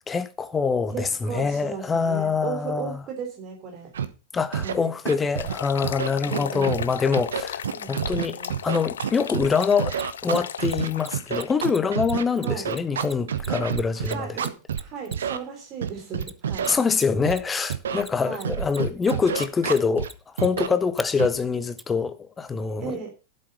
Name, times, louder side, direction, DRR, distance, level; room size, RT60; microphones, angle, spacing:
voice 1, 0.0-3.0 4.3-8.4 8.6-10.0 10.2-14.3 16.7-20.1 20.4-23.0, left 5 dB, 15° left, 1.1 m, -25 dB
voice 2, 0.9-3.9 4.6-4.9 6.2-6.9 7.7-8.6 12.4-12.7 13.5-13.7 13.9-16.7 18.2-18.6 22.8-23.1, right 6 dB, 35° right, 3.3 m, -36 dB
Scratching (performance technique), 3.9-4.1 4.5-4.7 5.1-5.5 5.8-6.8 7.1-9.5 9.8-14.8 15.1-15.4 15.8-16.7 17.3-17.4 17.7-18.0 18.4-20.1 20.4-20.7 21.2-21.4, right 8 dB, 65° right, 1.1 m, -28 dB
sound 1, 5.4-11.5, left 8 dB, 65° left, 0.5 m, -36 dB
Mechanisms, 8.4-8.5 9.6-15.4 16.2-17.0 17.3-21.1 21.8-21.9, right 1 dB, ahead, 0.7 m, -42 dB
11.5 x 7.9 x 5.5 m
figure-of-eight pair, 90°, 0 cm